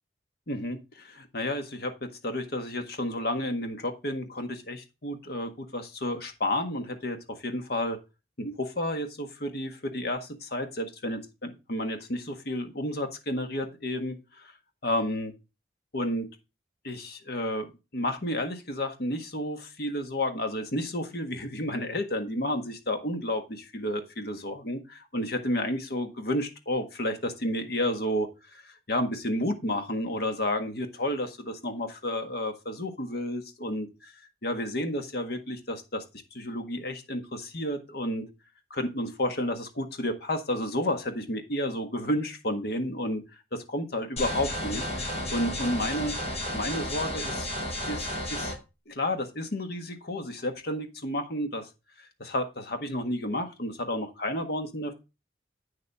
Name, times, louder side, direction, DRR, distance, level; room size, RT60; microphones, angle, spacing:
voice 1, 0.5-8.0 8.4-14.5 14.8-15.3 15.9-16.3 16.8-34.1 34.4-36.0 36.3-38.2 38.7-43.2 43.5-47.5 47.9-48.5 48.9-51.7 52.0-54.9, left 1 dB, 60° left, 6 dB, 1.6 m, -31 dB
sound 1, 44.2-48.5, left 1 dB, 40° left, 3.9 m, -32 dB
8.8 x 7.0 x 3.5 m, 0.27 s
head